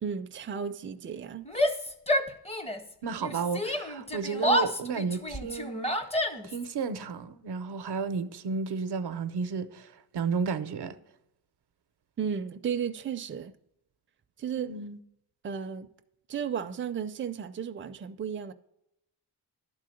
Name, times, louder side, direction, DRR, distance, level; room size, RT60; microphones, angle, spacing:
voice 1, 0.0-1.4 12.2-13.5 14.4-14.7 15.4-15.9 16.3-18.5, right 7 dB, 30° right, 0.4 m, -34 dB
Yell, 1.4-2.9 3.2-6.6, equal, 15° left, 0.6 m, -29 dB
voice 2, 3.0-5.9 6.4-11.0 14.6-15.0, right 5 dB, 90° right, 0.7 m, -32 dB
11.5 x 3.8 x 7.6 m
wide cardioid pair, 135°, 39 cm